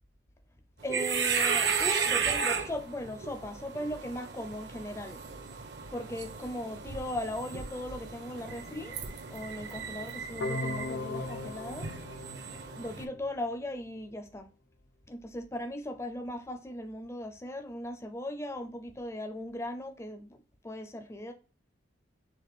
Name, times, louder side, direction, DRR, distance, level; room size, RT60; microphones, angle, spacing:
voice 1, 0.8-5.2 5.9-9.0 9.3-11.9 12.7-14.5 15.1-21.3, left 1 dB, 15° left, 0.4 m, -38 dB
sound 1, 0.8-13.1, right 6 dB, 55° right, 0.7 m, -34 dB
sound 2, 10.4-13.4, left 3 dB, 80° left, 0.5 m, -38 dB
6.3 x 2.2 x 3.5 m
head